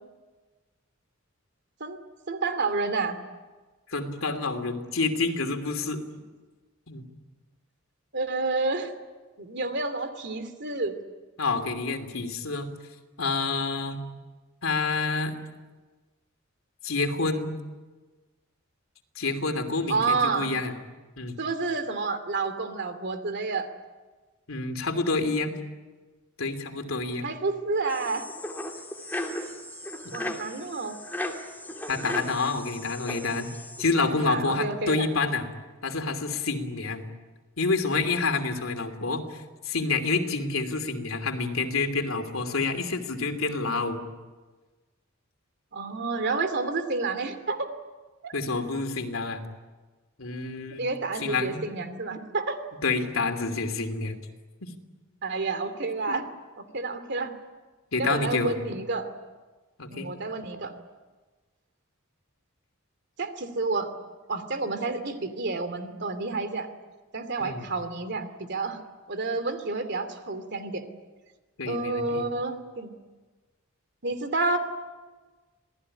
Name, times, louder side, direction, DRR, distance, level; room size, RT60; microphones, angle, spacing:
voice 1, 2.3-3.2 8.1-8.9 9.4-10.9 19.9-20.5 21.4-23.7 27.2-28.3 30.1-31.0 34.3-35.1 45.7-47.7 48.2-48.3 50.8-52.6 55.2-56.2 56.6-57.3 58.0-59.1 59.9-60.7 63.2-63.9 64.3-66.7 67.1-68.8 69.1-70.8 71.7-72.9 74.0-74.6, right 3 dB, 60° right, 9 dB, 2.7 m, -29 dB
voice 2, 3.9-6.0 6.9-7.0 11.4-12.7 13.2-14.0 14.6-15.3 16.8-17.5 19.2-20.7 21.2-21.3 24.5-25.6 26.4-27.3 31.9-33.5 33.8-35.5 35.8-37.1 37.6-44.0 48.3-49.4 50.2-50.8 51.2-51.6 52.8-54.2 54.6-54.7 56.1-56.2 57.9-58.6 59.8-60.1 67.4-67.7 71.6-72.2, left 3 dB, 90° left, 6 dB, 2.9 m, -28 dB
sound 1, 27.9-33.9, left 1 dB, 10° left, 2.8 m, -36 dB
27.0 x 18.5 x 9.9 m, 1.3 s
head